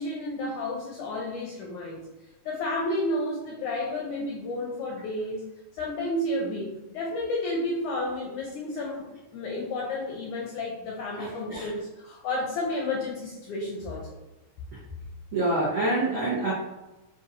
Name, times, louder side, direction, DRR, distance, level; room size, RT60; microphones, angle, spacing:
voice 1, 0.0-2.0 2.4-5.5 5.8-14.0, left 1 dB, 80° left, -3 dB, 1.7 m, -31 dB
voice 2, 11.2-11.7 14.7-14.8 15.3-16.5, right 2 dB, 85° right, -8 dB, 1.1 m, -27 dB
5.7 x 2.6 x 2.6 m, 1.0 s
omnidirectional pair, 4.0 m